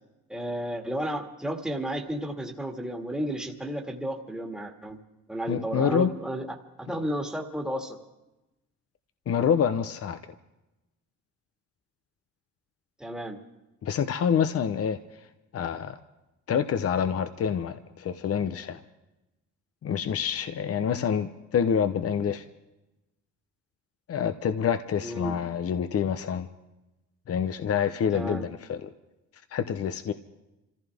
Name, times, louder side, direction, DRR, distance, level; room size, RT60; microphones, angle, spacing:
voice 1, 0.3-5.0 5.3-8.0 13.0-13.4 25.0-25.4 28.1-28.4, right 1 dB, ahead, 1 dB, 2.0 m, -32 dB
voice 2, 5.5-6.1 9.3-10.2 13.8-15.0 15.5-16.0 16.5-18.8 19.8-22.4 24.1-26.5 27.3-28.9 29.5-30.1, left 7 dB, 50° left, 9 dB, 0.9 m, -27 dB
26.5 x 15.0 x 3.5 m, 0.97 s
cardioid pair, 90°, 30 cm